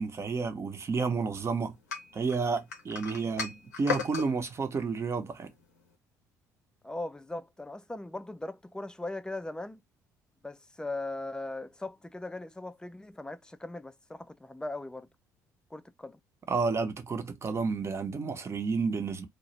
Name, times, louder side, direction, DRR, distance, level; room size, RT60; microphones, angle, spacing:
voice 1, 0.0-1.8 2.1-5.5 16.5-19.3, right 4 dB, 30° right, 0.7 m, -31 dB
sound 1, 1.9-4.3, left 6 dB, 85° left, 0.6 m, -35 dB
voice 2, 6.8-9.8 10.4-15.1 15.7-16.2, left 2 dB, 10° left, 0.4 m, -39 dB
2.3 x 2.1 x 2.8 m
figure-of-eight pair, 50°, 9 cm